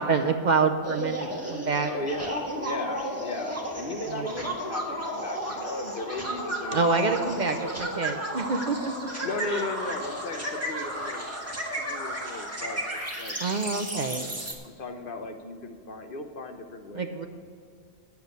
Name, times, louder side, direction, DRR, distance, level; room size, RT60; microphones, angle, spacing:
voice 1, 0.0-1.9 4.1-4.2 6.7-9.6 13.4-14.3 16.9-17.3, right 4 dB, 50° right, 5 dB, 0.7 m, -27 dB
sound 1, 0.8-14.5, equal, 15° right, 1.6 m, -33 dB
voice 2, 1.7-7.7 9.2-11.4 11.7-13.4 13.7-17.2, left 2 dB, 55° left, 6 dB, 1.0 m, -37 dB
9.5 x 6.9 x 8.0 m, 2.3 s
omnidirectional pair, 1.1 m